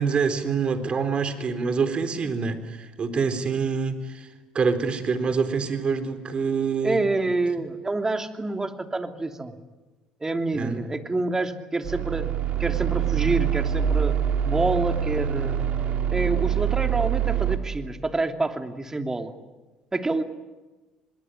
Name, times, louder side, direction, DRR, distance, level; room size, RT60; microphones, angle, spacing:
voice 1, 0.0-4.3 4.5-7.0 10.5-10.8, right 5 dB, 40° right, 9 dB, 3.9 m, -26 dB
voice 2, 6.8-9.5 10.2-12.3 12.6-14.2 14.4-15.6 16.1-19.3 19.9-20.2, right 2 dB, 20° right, 6 dB, 2.9 m, -27 dB
sound 1, 11.8-17.6, right 10 dB, 60° right, 3.1 m, -25 dB
25.0 x 22.0 x 9.9 m, 1.2 s
hypercardioid pair, 65°, 3 cm